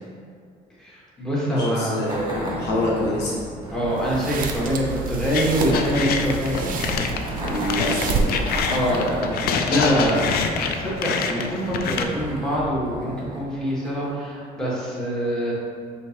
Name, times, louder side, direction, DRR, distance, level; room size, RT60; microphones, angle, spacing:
voice 1, 0.8-2.1 3.7-6.7 8.3-10.4 10.8-15.5, equal, 5° left, -7 dB, 1.3 m, -25 dB
voice 2, 1.5-3.4 7.4-8.4, left 1 dB, 90° left, -5 dB, 1.1 m, -26 dB
sound 1, 2.1-14.2, right 1 dB, 25° right, 1.3 m, -35 dB
sound 2, 3.9-9.2, right 4 dB, 55° right, 0.5 m, -29 dB
sound 3, 5.3-12.0, left 6 dB, 65° left, 0.4 m, -26 dB
6.2 x 2.8 x 2.8 m, 2.1 s
cardioid pair, 110°, 17 cm